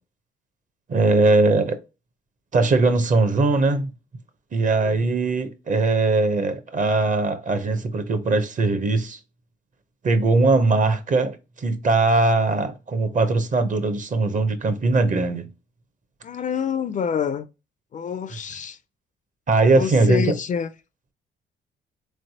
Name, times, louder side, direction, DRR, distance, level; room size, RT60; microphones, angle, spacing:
voice 1, 0.9-1.8 2.5-3.9 4.5-9.2 10.0-15.5 19.5-20.3, right 3 dB, 40° right, 0.7 m, -20 dB
voice 2, 16.2-17.5 17.9-18.8 19.7-20.7, left 7 dB, 40° left, 0.4 m, -27 dB
3.9 x 3.2 x 2.7 m
cardioid pair, 90°, 20 cm